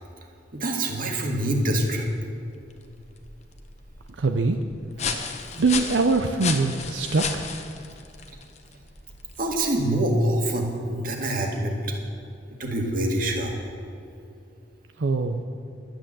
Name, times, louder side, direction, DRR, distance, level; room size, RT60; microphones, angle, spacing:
voice 1, 0.6-2.1 9.4-11.9 12.6-13.5, right 1 dB, 50° right, 1 dB, 1.8 m, -25 dB
sound 1, 2.5-10.0, left 5 dB, 35° left, 0.9 m, -35 dB
voice 2, 4.2-4.6 5.6-7.4 15.0-15.4, right 3 dB, 85° right, 6 dB, 0.6 m, -23 dB
12.0 x 9.1 x 7.5 m, 2.6 s
head